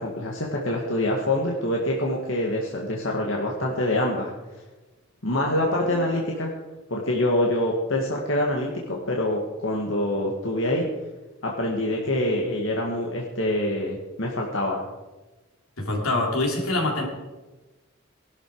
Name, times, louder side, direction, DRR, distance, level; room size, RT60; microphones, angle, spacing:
voice 1, 0.0-4.3 5.2-6.5 6.9-10.9 11.4-14.8, left 1 dB, 65° left, -1 dB, 2.0 m, -25 dB
voice 2, 15.8-17.1, left 2 dB, 85° left, 0 dB, 3.8 m, -25 dB
19.5 x 12.0 x 4.9 m, 1.2 s
head